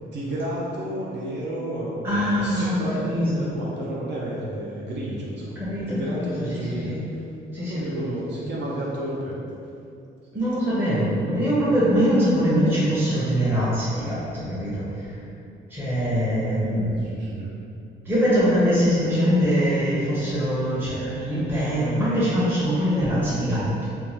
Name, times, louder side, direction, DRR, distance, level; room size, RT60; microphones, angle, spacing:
voice 1, 0.1-5.6 5.9-6.9 7.6-9.4 16.6-17.5, right 1 dB, 60° right, -5 dB, 0.5 m, -31 dB
voice 2, 2.0-3.4 5.5-7.1 7.5-8.1 8.4-8.5 10.3-15.1 15.7-16.9 18.0-23.9, equal, 10° right, -11 dB, 0.7 m, -23 dB
2.6 x 2.2 x 3.1 m, 2.6 s
cardioid pair, 90°, 20 cm